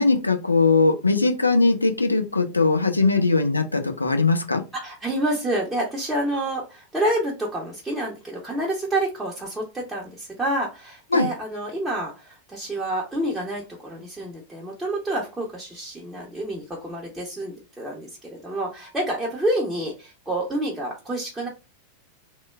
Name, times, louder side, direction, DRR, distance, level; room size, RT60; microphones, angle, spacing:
voice 1, 0.0-4.6 11.1-11.3, left 3 dB, 80° left, 6 dB, 0.4 m, -20 dB
voice 2, 4.7-21.5, right 1 dB, 10° right, -3 dB, 0.6 m, -28 dB
3.0 x 2.1 x 2.3 m, 0.30 s
figure-of-eight pair, 90°, 0 cm